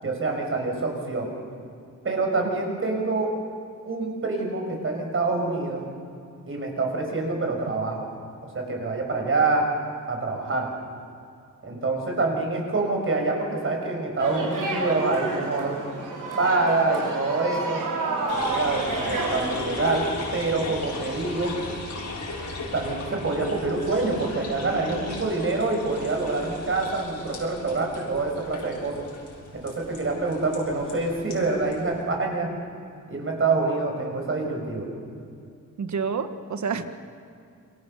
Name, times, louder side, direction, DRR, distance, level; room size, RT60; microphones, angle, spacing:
voice 1, 0.0-1.3 2.0-3.3 3.9-5.8 6.5-8.1 8.5-9.7 10.1-10.7 11.6-15.8 16.4-17.8 18.3-21.5 22.7-29.0 29.6-32.5 33.1-34.8, right 3 dB, 40° right, 2 dB, 6.3 m, -26 dB
sound 1, 14.2-19.6, right 3 dB, 80° right, 6.9 m, -29 dB
sound 2, 18.3-32.0, left 2 dB, 60° left, 6.7 m, -37 dB
voice 2, 35.8-36.8, right 5 dB, 60° right, 8 dB, 1.7 m, -28 dB
28.0 x 24.5 x 6.8 m, 2.4 s
wide cardioid pair, 120°, 32 cm